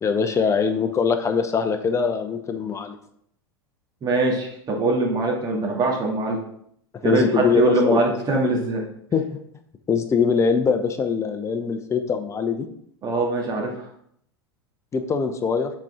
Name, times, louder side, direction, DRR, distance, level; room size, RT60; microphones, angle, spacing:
voice 1, 0.0-3.0 7.0-8.0 9.1-9.2 9.9-12.7 14.9-15.7, left 5 dB, 20° left, 7 dB, 0.8 m, -22 dB
voice 2, 4.0-6.4 7.0-8.8 13.0-13.9, right 2 dB, 30° right, -1 dB, 2.1 m, -22 dB
7.3 x 4.4 x 3.7 m, 0.69 s
figure-of-eight pair, 85°, 13 cm